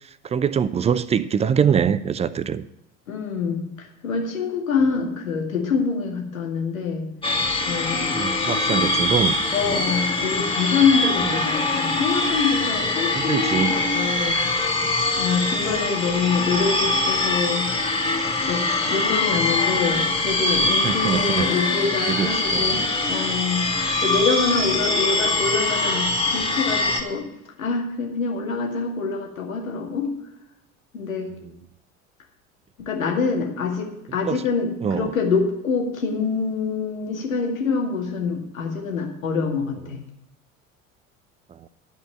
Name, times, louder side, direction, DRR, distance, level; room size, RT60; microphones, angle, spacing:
voice 1, 0.2-2.6 8.1-9.4 9.7-9.8 13.1-13.7 15.6-15.8 20.6-21.5 22.1-22.9 31.3-31.4 34.2-34.4 34.8-35.1, right 7 dB, 15° right, 16 dB, 0.4 m, -24 dB
voice 2, 3.1-7.1 7.7-8.3 8.6-8.8 9.5-14.4 15.2-17.7 18.5-18.6 18.9-27.3 27.6-30.1 30.9-31.3 32.8-40.0, left 5 dB, 80° left, 0 dB, 2.2 m, -25 dB
sound 1, 7.2-27.0, left 2 dB, 15° left, 2.0 m, -23 dB
11.5 x 5.2 x 7.5 m, 0.88 s
figure-of-eight pair, 70°, 40 cm